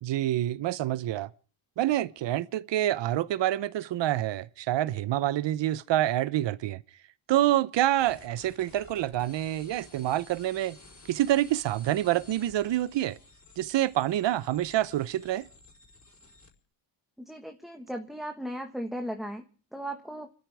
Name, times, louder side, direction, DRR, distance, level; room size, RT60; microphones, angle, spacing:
voice 1, 0.0-1.3 1.8-6.8 7.3-10.8 11.1-13.2 13.6-15.5, right 13 dB, 65° right, 0.8 m, -27 dB
sound 1, 8.0-16.5, left 3 dB, 35° left, 4.5 m, -54 dB
voice 2, 17.2-19.4 19.7-20.3, right 1 dB, ahead, 1.4 m, -36 dB
29.5 x 13.0 x 3.5 m
cardioid pair, 100°, 48 cm